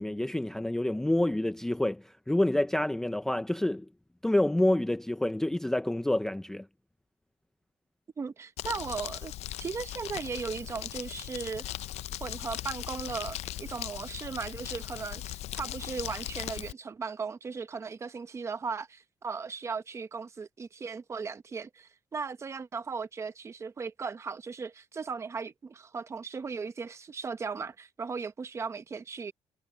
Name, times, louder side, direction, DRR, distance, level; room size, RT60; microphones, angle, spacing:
voice 1, 0.0-3.9 4.2-6.7, left 1 dB, 5° left, 0.4 m, -28 dB
voice 2, 8.2-9.3 9.6-11.6 12.2-29.3, right 5 dB, 25° right, 0.8 m, -37 dB
Crumpling crinkling, 8.6-16.7, left 14 dB, 75° left, 0.5 m, -39 dB
cardioid pair, 175°, 11 cm